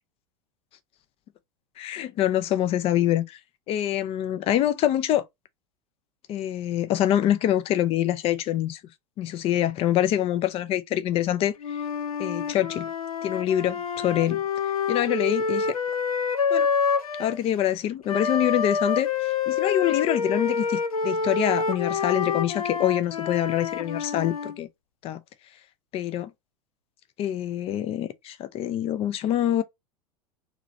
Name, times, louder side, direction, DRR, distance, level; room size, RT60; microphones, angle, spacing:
voice 1, 1.8-3.4 3.7-5.2 6.3-8.8 9.2-11.5 12.2-12.9 13.2-14.4 14.9-15.7 16.5-16.7 17.2-24.7 25.0-25.2 25.9-26.3 27.2-29.6, left 11 dB, 30° left, 0.6 m, -25 dB
Wind instrument woodwind instrument, 11.6-17.4 18.1-24.6, left 5 dB, 75° left, 0.6 m, -27 dB
4.6 x 3.2 x 2.6 m
figure-of-eight pair, 85°, 19 cm